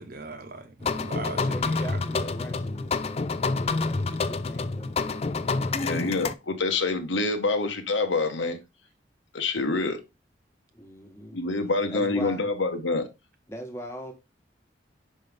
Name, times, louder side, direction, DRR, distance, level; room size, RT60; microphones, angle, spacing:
voice 1, 0.0-2.2, right 3 dB, 50° right, 1.0 m, -39 dB
sound 1, 0.8-6.3, left 3 dB, 30° left, 0.3 m, -28 dB
voice 2, 1.4-5.8 10.7-11.4 11.9-12.5 13.5-14.1, equal, 15° left, 1.3 m, -41 dB
voice 3, 5.8-8.6 9.3-10.0 11.3-13.1, left 3 dB, 80° left, 1.1 m, -26 dB
5.5 x 5.4 x 3.4 m
head